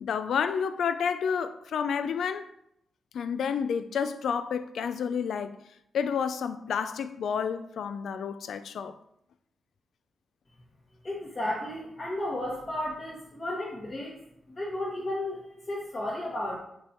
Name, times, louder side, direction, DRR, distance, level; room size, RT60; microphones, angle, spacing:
voice 1, 0.0-2.5 3.1-5.6 5.9-8.9, left 7 dB, 80° left, 0.4 m, -30 dB
voice 2, 11.0-14.1 14.5-16.6, left 1 dB, 30° left, 1.4 m, -33 dB
5.1 x 4.6 x 4.4 m
wide cardioid pair, 140°, 0 cm